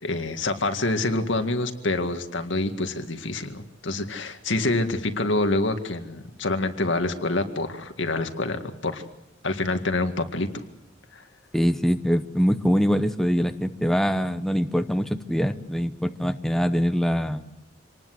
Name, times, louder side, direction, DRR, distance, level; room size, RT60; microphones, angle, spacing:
voice 1, 0.0-9.0 9.4-10.6 11.1-11.2, left 2 dB, 80° left, 7 dB, 2.0 m, -26 dB
voice 2, 11.5-17.4, equal, ahead, 8 dB, 0.9 m, -23 dB
26.5 x 19.5 x 7.8 m, 0.84 s
head